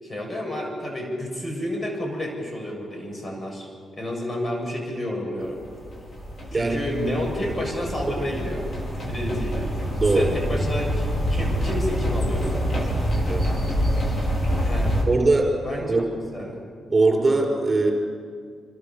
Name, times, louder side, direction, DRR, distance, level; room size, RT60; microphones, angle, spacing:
voice 1, 0.0-3.7 3.9-5.6 6.5-8.7 9.0-9.7 10.0-12.6 14.6-14.9 15.6-16.0 16.3-16.6, left 1 dB, 30° left, 0 dB, 7.8 m, -30 dB
sound 1, 5.4-15.0, equal, 45° left, 5.2 m, -26 dB
voice 2, 6.5-6.9 7.4-7.5 8.1-8.3 10.0-10.3 13.2-13.5 15.0-15.5 15.9-16.1 16.9-17.9, right 3 dB, 30° right, 1 dB, 5.7 m, -21 dB
27.5 x 13.5 x 7.2 m, 2.1 s
supercardioid pair, 60°, 0 cm